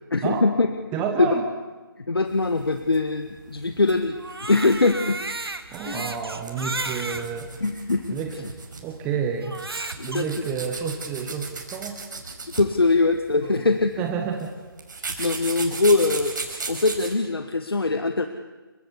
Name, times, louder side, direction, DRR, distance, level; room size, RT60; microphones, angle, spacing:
voice 1, 0.1-0.7 1.2-1.3 2.0-5.2 5.9-6.1 7.6-8.2 10.0-10.4 12.5-14.0 15.2-16.3 16.7-18.3, left 3 dB, 75° left, 7 dB, 1.6 m, -22 dB
voice 2, 0.9-1.5 5.7-7.6 8.1-8.4 8.8-9.6 10.0-12.0 13.4-13.7 14.0-14.5, right 6 dB, 10° right, 4 dB, 1.2 m, -29 dB
sound 1, 2.3-17.1, right 4 dB, 50° right, 5.8 m, -37 dB
Crying sobbing, 4.1-7.3 8.0-8.1 9.4-10.2, right 3 dB, 80° right, 2.1 m, -33 dB
30.0 x 16.0 x 8.2 m, 1.3 s
figure-of-eight pair, 155°, 13 cm